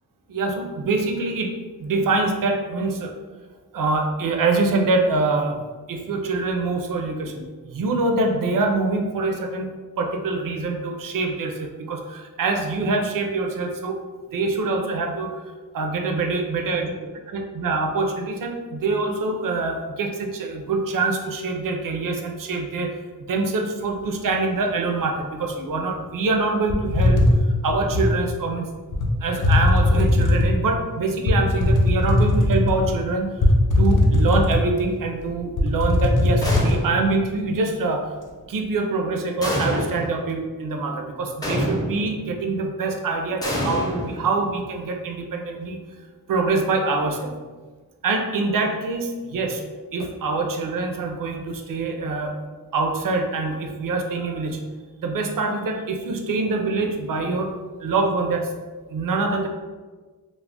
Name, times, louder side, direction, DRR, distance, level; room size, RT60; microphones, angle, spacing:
voice 1, 0.3-3.1 3.7-5.6 5.9-14.0 14.3-16.9 17.3-23.0 23.3-27.3 27.6-28.7 29.2-33.4 33.8-38.1 38.5-45.8 46.3-47.4 48.0-49.6 49.9-52.4 52.7-54.6 55.0-58.5 58.9-59.5, right 3 dB, 65° right, 4 dB, 0.5 m, -25 dB
sound 1, 26.7-28.1 28.9-29.1 29.4-30.6 31.3-32.9 33.4-34.8 35.2-35.3 35.6-36.8, left 1 dB, 60° left, 0.5 m, -19 dB
sound 2, 36.4-37.2 39.4-40.2 41.4-42.2 43.4-44.6, equal, 10° left, 0.5 m, -27 dB
2.3 x 2.0 x 3.6 m, 1.4 s
wide cardioid pair, 85°, 35 cm